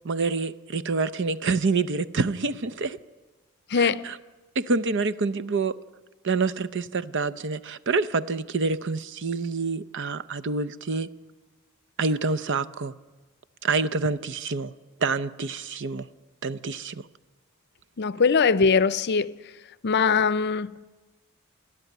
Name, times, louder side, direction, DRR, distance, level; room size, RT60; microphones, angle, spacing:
voice 1, 0.0-3.0 3.8-4.2 4.6-5.8 6.2-11.1 12.0-12.9 13.6-14.7 15.0-16.1 16.4-17.0, right 4 dB, 55° right, 0.7 m, -27 dB
voice 2, 3.7-4.0 18.0-19.4 19.8-21.0, left 5 dB, 50° left, 0.6 m, -22 dB
29.5 x 11.0 x 9.2 m
head